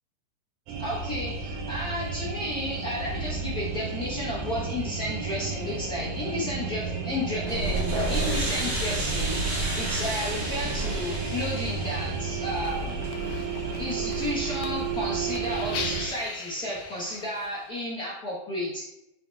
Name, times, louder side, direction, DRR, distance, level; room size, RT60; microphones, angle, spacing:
sound 1, 0.7-16.1, right 4 dB, 70° right, 2.2 m, -34 dB
voice 1, 0.8-12.9 13.8-18.9, left 1 dB, 55° left, -8 dB, 1.0 m, -32 dB
sound 2, 7.5-16.0, right 3 dB, 25° right, 1.8 m, -31 dB
sound 3, 12.6-17.7, left 5 dB, 70° left, 2.1 m, -40 dB
7.7 x 4.8 x 3.4 m, 0.84 s
omnidirectional pair, 3.9 m